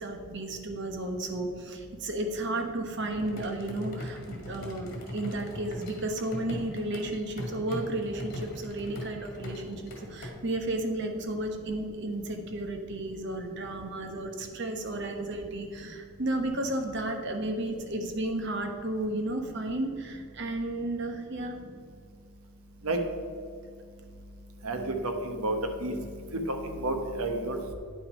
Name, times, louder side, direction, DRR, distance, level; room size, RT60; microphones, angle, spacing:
voice 1, 0.0-21.6, right 1 dB, 50° right, 4 dB, 1.1 m, -33 dB
sound 1, 3.1-10.3, left 1 dB, 40° left, 1.8 m, -40 dB
voice 2, 24.6-25.5 25.8-26.0 26.5-27.7, right 2 dB, 75° right, 5 dB, 1.0 m, -31 dB
9.5 x 6.0 x 5.2 m, 2.2 s
head